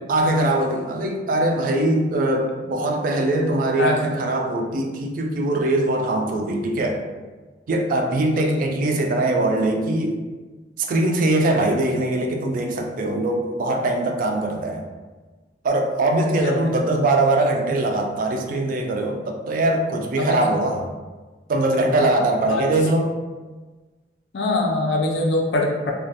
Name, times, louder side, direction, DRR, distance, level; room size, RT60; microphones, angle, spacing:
voice 1, 0.1-7.0 7.7-10.2 10.8-14.8 15.6-20.9 21.5-23.2, right 2 dB, 50° right, 3 dB, 0.3 m, -22 dB
voice 2, 8.3-8.8 16.2-16.8 20.2-20.5 22.5-22.6 24.3-25.9, left 2 dB, 75° left, 0 dB, 0.4 m, -23 dB
2.3 x 2.1 x 2.8 m, 1.3 s
head